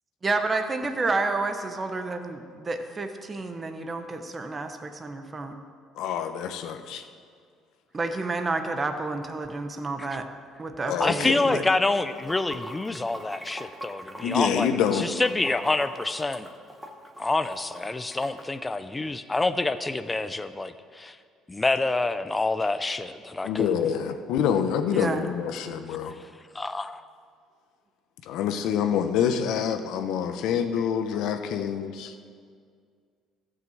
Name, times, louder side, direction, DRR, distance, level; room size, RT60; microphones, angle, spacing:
voice 1, 0.2-5.6 7.9-10.2 10.6-11.6 24.9-25.2, right 3 dB, 25° right, 6 dB, 0.9 m, -30 dB
voice 2, 6.0-7.0 10.9-11.6 14.2-15.0 23.4-26.1 28.3-32.1, left 8 dB, 75° left, 8 dB, 0.9 m, -26 dB
voice 3, 11.0-16.5 17.2-21.2 21.5-23.8 26.5-27.0, left 2 dB, 15° left, 12 dB, 0.5 m, -27 dB
Water / Sink (filling or washing), 12.0-18.4, equal, ahead, 1.3 m, -42 dB
14.0 x 5.8 x 7.9 m, 2.1 s
cardioid pair, 115°, 0 cm